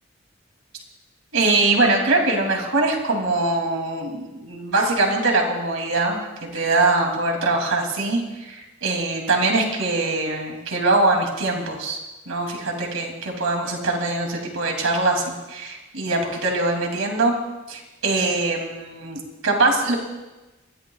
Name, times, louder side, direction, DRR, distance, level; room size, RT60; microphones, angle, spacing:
voice 1, 1.3-12.0 12.3-17.4 17.7-19.9, right 2 dB, 85° right, 1 dB, 2.9 m, -22 dB
24.0 x 14.5 x 2.4 m, 1.1 s
head